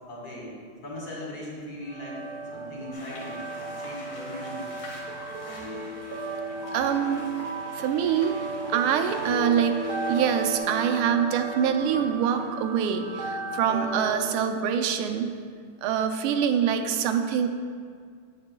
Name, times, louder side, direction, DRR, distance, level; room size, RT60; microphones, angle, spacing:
voice 1, 0.1-0.6 0.8-2.2 2.5-4.7, equal, 50° left, -6 dB, 2.5 m, -38 dB
sound 1, 1.9-14.2, right 2 dB, 55° right, 1.3 m, -34 dB
sound 2, 2.9-10.6, left 2 dB, 80° left, 2.0 m, -47 dB
voice 2, 6.7-7.3 7.7-8.4 8.7-9.8 10.1-15.3 15.8-17.5, right 8 dB, 80° right, 7 dB, 1.4 m, -25 dB
10.0 x 7.7 x 2.2 m, 2.1 s
omnidirectional pair, 2.4 m